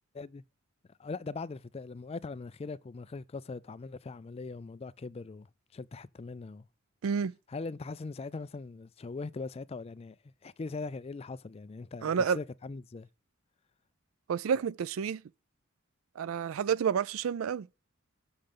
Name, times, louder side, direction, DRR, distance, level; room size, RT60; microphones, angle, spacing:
voice 1, 1.0-6.7 7.5-10.2 10.4-13.1, left 3 dB, 30° left, 0.4 m, -41 dB
voice 2, 7.0-7.3 12.0-12.4 14.3-15.2 16.2-17.7, right 7 dB, 85° right, 0.4 m, -29 dB
6.5 x 5.7 x 6.7 m
head